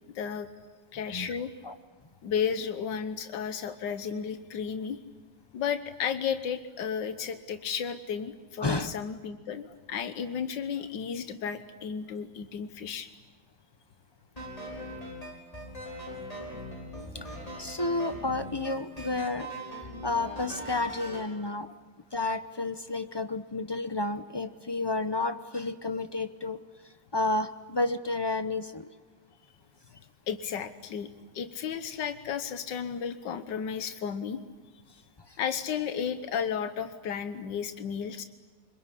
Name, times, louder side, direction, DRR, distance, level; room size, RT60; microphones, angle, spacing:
voice 1, 0.2-0.5 0.9-1.5 2.2-5.0 5.5-13.1 30.3-31.1 31.3-34.4 35.4-38.2, left 7 dB, 90° left, 10 dB, 1.7 m, -33 dB
voice 2, 8.6-9.0 17.1-17.3 17.6-19.5 20.0-21.7 22.1-26.6 27.1-28.9, left 2 dB, 35° left, 11 dB, 0.4 m, -31 dB
sound 1, 14.4-21.3, equal, 20° left, 5.6 m, -40 dB
25.5 x 22.5 x 10.0 m, 1.3 s
omnidirectional pair, 1.9 m